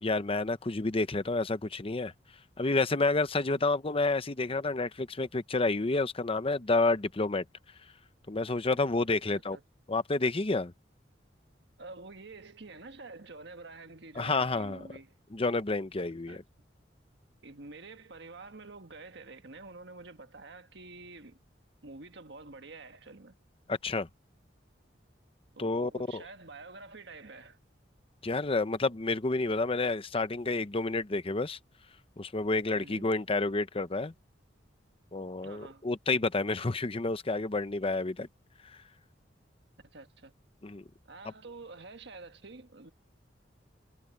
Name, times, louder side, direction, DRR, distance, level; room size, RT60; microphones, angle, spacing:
voice 1, 0.0-2.1 2.6-7.4 8.3-9.6 9.9-10.7 14.2-14.8 15.3-16.4 23.7-24.1 25.6-26.2 28.2-31.6 32.2-34.1 35.1-38.3 38.6-38.8 40.6-40.8, left 3 dB, 30° left, 0.8 m, -29 dB
voice 2, 9.1-9.6 11.8-15.1 16.3-16.4 17.4-21.4 21.8-23.4 25.5-27.6 32.8-33.1 35.4-35.8 39.9-40.3 41.0-42.9, right 3 dB, 65° right, 1.6 m, -48 dB
head